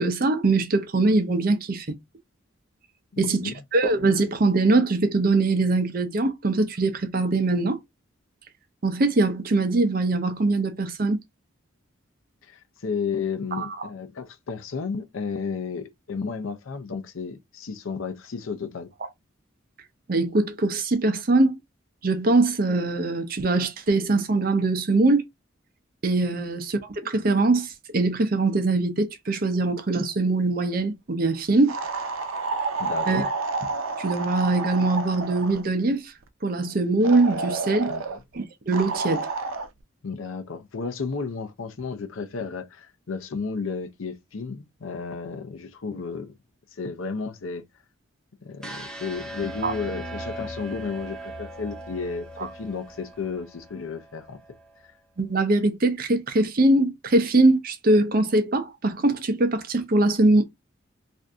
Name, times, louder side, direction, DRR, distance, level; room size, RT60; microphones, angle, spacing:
voice 1, 0.0-1.9 3.2-7.8 8.8-11.2 13.6-13.9 20.1-21.6 22.0-25.2 26.0-31.7 33.1-33.3 34.0-36.1 36.4-37.9 38.3-39.3 49.6-49.7 55.2-60.5, right 2 dB, 45° right, 0.6 m, -22 dB
voice 2, 3.1-3.5 12.4-18.9 32.8-33.3 37.9-38.0 40.0-46.3 46.8-47.6 48.4-54.4 54.8-54.9, left 5 dB, 80° left, 0.6 m, -33 dB
sound 1, 31.7-35.7 37.0-38.2 38.7-39.7, right 3 dB, 85° right, 0.5 m, -30 dB
sound 2, 48.6-54.7, right 1 dB, 5° left, 0.5 m, -39 dB
2.6 x 2.5 x 3.4 m
head